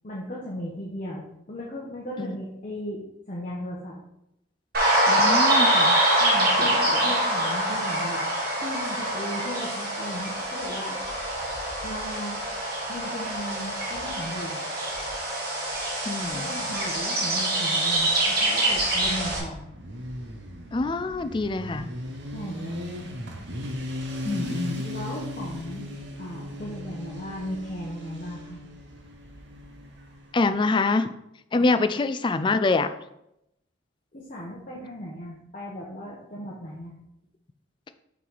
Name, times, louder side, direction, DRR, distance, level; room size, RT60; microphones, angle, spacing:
voice 1, 0.0-3.0 3.3-3.9 6.2-6.8 7.0-8.2 8.6-11.0 11.8-12.4 12.9-14.6 16.3-19.7 22.3-22.8 24.8-25.9 26.2-28.6 31.5-31.7 34.1-36.9, equal, 40° left, -5 dB, 1.0 m, -36 dB
sound 1, 4.7-19.4, right 1 dB, 50° right, 1.7 m, -25 dB
voice 2, 5.1-6.0 6.6-7.1 16.1-16.5 20.7-21.9 24.2-24.9 30.3-31.1 31.5-32.9, left 3 dB, 25° left, 11 dB, 0.3 m, -25 dB
Motorcycle, 18.9-30.5, left 1 dB, 65° right, 1.1 m, -37 dB
5.9 x 4.0 x 4.7 m, 0.82 s
head